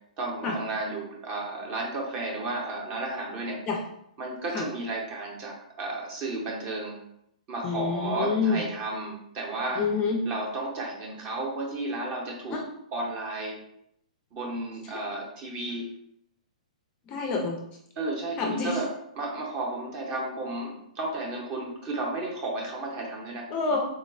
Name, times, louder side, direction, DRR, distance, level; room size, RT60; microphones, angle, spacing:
voice 1, 0.2-3.6 4.2-7.0 7.5-9.8 10.3-12.6 12.9-13.6 14.3-15.9 18.0-18.9 19.2-23.5, right 2 dB, 30° right, -1 dB, 0.7 m, -33 dB
voice 2, 7.6-8.6 9.8-10.2 12.5-12.6 14.8-15.0 17.1-17.6 18.4-18.8 23.5-23.9, left 4 dB, 25° left, 1 dB, 0.4 m, -27 dB
3.9 x 2.0 x 2.4 m, 0.75 s
hypercardioid pair, 150°, 4 cm